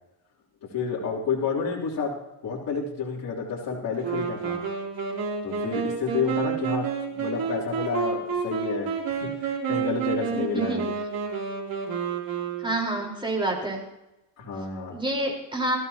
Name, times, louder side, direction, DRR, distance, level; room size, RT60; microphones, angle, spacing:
voice 1, 0.7-2.1 2.4-4.6 5.4-8.9 9.2-11.0 14.4-15.0, left 5 dB, 50° left, -5 dB, 3.3 m, -30 dB
Wind instrument woodwind instrument, 4.0-13.0, right 6 dB, 50° right, 3.2 m, -29 dB
voice 2, 10.3-10.8 12.6-13.8 14.9-15.8, right 2 dB, 10° right, -1 dB, 4.3 m, -28 dB
19.0 x 14.0 x 2.9 m, 0.95 s
cardioid pair, 110°, 45 cm